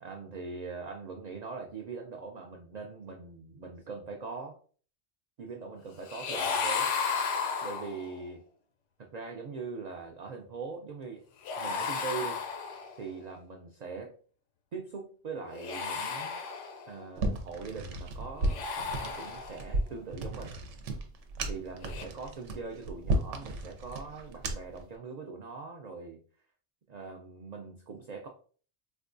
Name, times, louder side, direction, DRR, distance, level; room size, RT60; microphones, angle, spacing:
voice 1, 0.0-4.6 5.4-6.9 7.6-8.4 9.0-11.2 11.6-12.4 13.0-14.1 14.7-16.3 16.9-20.6 21.5-26.2 26.9-28.3, right 4 dB, 65° right, 2 dB, 0.4 m, -41 dB
sound 1, 6.1-8.2 11.4-13.1 15.5-17.0 18.4-19.8 21.8-22.0, left 5 dB, 90° left, 0.9 m, -34 dB
sound 2, 17.2-24.8, right 1 dB, 90° right, 0.9 m, -34 dB
4.2 x 2.2 x 2.5 m, 0.42 s
omnidirectional pair, 1.2 m